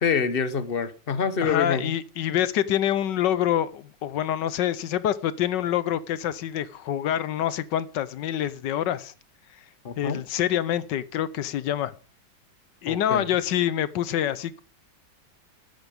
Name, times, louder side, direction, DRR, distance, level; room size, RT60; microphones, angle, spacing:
voice 1, 0.0-1.9 9.8-10.2 12.9-13.4, left 6 dB, 35° left, 1.0 m, -26 dB
voice 2, 1.4-9.1 10.0-11.9 12.8-14.6, left 11 dB, 70° left, 1.3 m, -26 dB
13.0 x 9.2 x 5.2 m
omnidirectional pair, 2.1 m